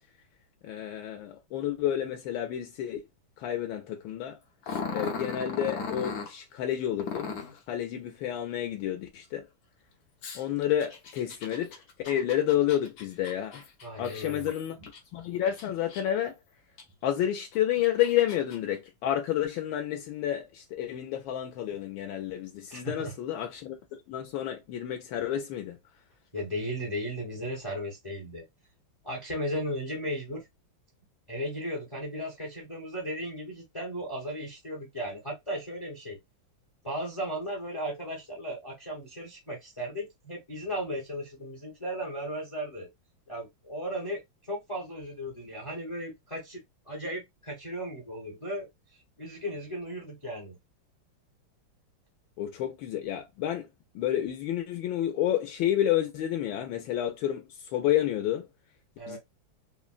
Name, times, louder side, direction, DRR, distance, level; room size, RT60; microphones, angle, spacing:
voice 1, 0.6-3.0 3.4-4.4 4.9-7.3 7.7-9.5 10.3-13.6 14.0-14.8 15.1-16.4 17.0-23.8 24.1-25.8 52.4-53.7 53.9-58.5 59.1-59.2, left 11 dB, 80° left, 1.3 m, -30 dB
Growling, 4.6-6.3 7.0-7.6 10.2-15.0 15.5-16.3 16.8-16.9 17.6-18.6, left 4 dB, 60° left, 1.0 m, -37 dB
voice 2, 13.8-14.5 22.7-23.1 26.3-28.5 29.0-30.5 31.3-36.2 36.8-42.9 43.3-44.2 44.5-46.6 46.9-48.7 49.2-50.6 59.0-59.2, equal, 40° left, 0.4 m, -36 dB
3.8 x 2.0 x 2.4 m
omnidirectional pair, 2.2 m